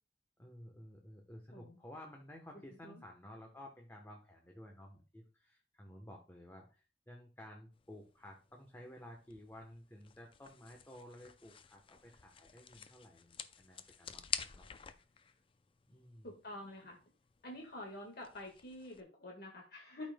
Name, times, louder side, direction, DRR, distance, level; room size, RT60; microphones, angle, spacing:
voice 1, 0.4-14.7 15.3-15.4 15.9-16.3, left 1 dB, 15° left, 1 dB, 0.9 m, -54 dB
sound 1, 7.7-19.0, left 7 dB, 30° left, 0.4 m, -49 dB
voice 2, 16.2-17.0 17.4-20.1, left 1 dB, 60° left, 0 dB, 1.6 m, -48 dB
12.5 x 5.2 x 2.2 m, 0.34 s
head